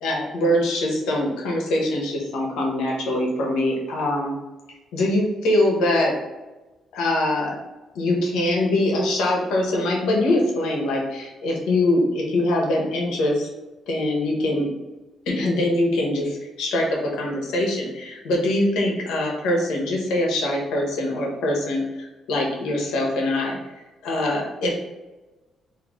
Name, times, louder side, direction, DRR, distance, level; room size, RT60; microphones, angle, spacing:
voice 1, 0.0-4.3 4.9-6.2 6.9-7.5 7.9-13.5 13.9-14.7 15.3-23.6 24.0-24.9, left 1 dB, 90° left, -1 dB, 1.1 m, -23 dB
3.8 x 2.8 x 3.1 m, 1.1 s
cardioid pair, 90°, 0 cm